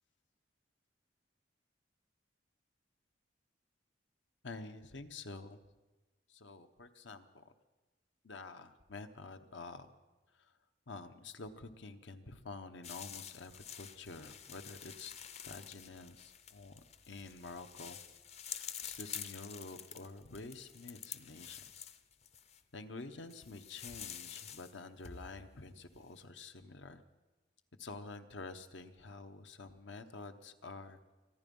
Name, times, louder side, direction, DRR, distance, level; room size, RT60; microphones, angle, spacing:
voice 1, 4.4-5.6 6.3-7.5 8.2-9.9 10.3-10.6 10.9-15.1 15.4-16.8 17.1-18.0 18.5-21.7 22.7-27.0 27.8-31.1, left 3 dB, 80° left, 9 dB, 1.1 m, -49 dB
sound 1, 12.8-22.6 23.3-24.7 25.0-25.9, left 8 dB, 35° left, 0.6 m, -48 dB
24.5 x 10.5 x 5.5 m, 1.1 s
head